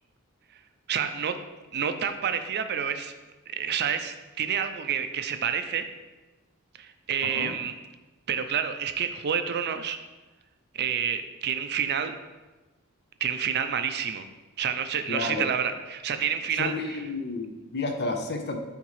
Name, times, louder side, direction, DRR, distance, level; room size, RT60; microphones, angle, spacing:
voice 1, 0.9-1.4 1.7-3.1 3.5-5.9 6.8-7.7 8.3-10.0 10.7-12.2 13.2-14.3 14.6-17.0, right 7 dB, 50° right, 9 dB, 0.5 m, -29 dB
voice 2, 15.1-15.4 16.5-18.6, left 3 dB, 50° left, 5 dB, 0.7 m, -31 dB
9.5 x 3.6 x 3.1 m, 1.2 s
head